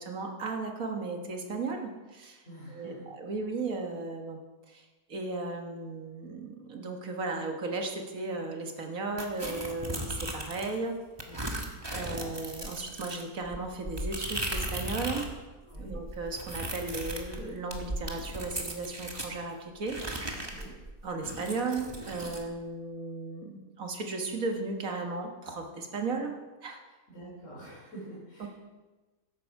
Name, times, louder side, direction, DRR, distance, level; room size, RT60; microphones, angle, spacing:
voice 1, 0.0-2.4 2.7-4.4 4.7-11.0 11.9-15.4 15.8-20.0 20.4-20.5 21.0-26.3 26.6-26.8 28.4-28.5, right 3 dB, 60° right, 3 dB, 1.9 m, -35 dB
voice 2, 2.4-3.1 11.3-11.6 15.6-16.0 20.5-20.7 27.1-28.5, right 1 dB, 50° left, -7 dB, 3.9 m, -46 dB
sound 1, 9.2-10.8 11.2-15.3 15.6-19.3 19.9-22.4, right 1 dB, 15° right, 1.4 m, -37 dB
13.5 x 11.0 x 4.8 m, 1.2 s
omnidirectional pair, 1.7 m